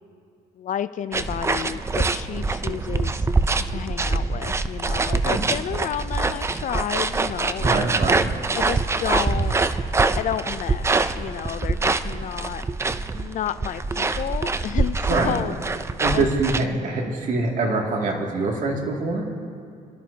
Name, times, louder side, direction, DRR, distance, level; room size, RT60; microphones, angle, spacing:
voice 1, 0.6-3.3 3.7-7.9 8.5-9.6 10.2-12.6 13.1-15.6 16.1-16.3, left 10 dB, 50° left, 14 dB, 0.4 m, -31 dB
sound 1, 1.1-16.7, right 3 dB, 15° right, 0.4 m, -24 dB
voice 2, 7.6-8.3 15.1-15.4 16.0-19.3, right 3 dB, 50° right, 0 dB, 2.4 m, -24 dB
26.0 x 12.5 x 2.8 m, 2.4 s
cardioid pair, 110°, 17 cm